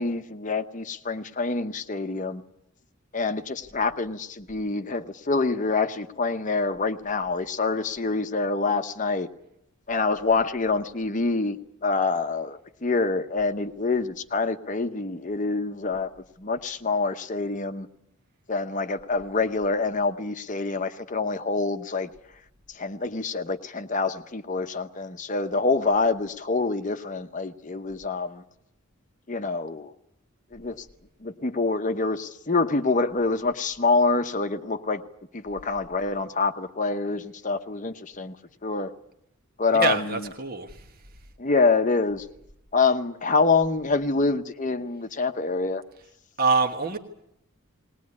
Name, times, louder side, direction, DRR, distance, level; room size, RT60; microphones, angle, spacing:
voice 1, 0.0-2.4 3.1-9.3 9.9-16.1 16.4-17.9 18.5-22.1 22.7-28.4 29.3-29.9 30.5-30.8 31.2-35.0 35.3-38.4 38.6-38.9 39.6-40.3 41.4-42.3 42.7-45.8, left 3 dB, 35° left, 8 dB, 0.8 m, -26 dB
voice 2, 39.7-40.8 46.4-47.0, right 4 dB, 45° right, 5 dB, 1.3 m, -25 dB
20.0 x 19.5 x 9.6 m, 0.80 s
head